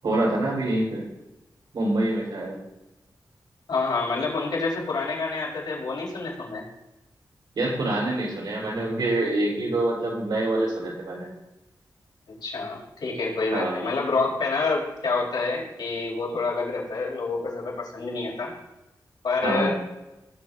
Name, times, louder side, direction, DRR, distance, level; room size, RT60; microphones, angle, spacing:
voice 1, 0.0-1.0 1.7-2.6 7.5-11.3 13.5-13.8 19.4-19.7, right 2 dB, 70° right, -3 dB, 4.6 m, -26 dB
voice 2, 3.7-6.6 12.4-18.5 19.2-19.7, left 3 dB, 75° left, -5 dB, 4.5 m, -27 dB
18.0 x 8.2 x 2.8 m, 0.99 s
wide cardioid pair, 125°, 8 cm